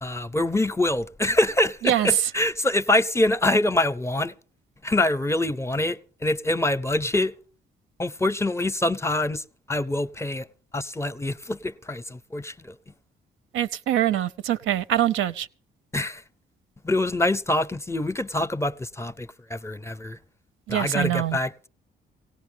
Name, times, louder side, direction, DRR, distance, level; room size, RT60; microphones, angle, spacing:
voice 1, 0.0-4.3 4.8-7.3 8.0-10.5 10.7-12.7 15.9-16.2 16.8-20.2 20.7-21.7, left 1 dB, 15° left, 0.6 m, -25 dB
voice 2, 1.8-2.2 13.5-15.5 20.7-21.4, right 11 dB, 85° right, 0.7 m, -24 dB
18.0 x 17.5 x 3.4 m
cardioid pair, 90°, 20 cm